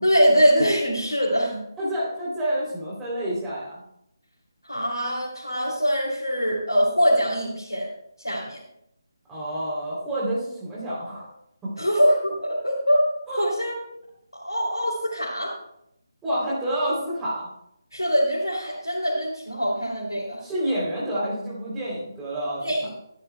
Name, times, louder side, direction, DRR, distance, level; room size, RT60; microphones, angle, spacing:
voice 1, 0.0-1.6 4.6-7.9 8.2-8.6 11.8-13.1 13.4-13.7 14.3-15.5 17.9-20.4 22.6-22.9, equal, 80° left, -4 dB, 2.9 m, -23 dB
voice 2, 1.8-3.8 9.3-11.3 11.6-11.7 13.3-13.5 16.2-17.5 20.4-22.6, right 1 dB, 10° right, -7 dB, 3.2 m, -28 dB
13.5 x 13.0 x 2.3 m, 0.78 s
figure-of-eight pair, 150°, 2 cm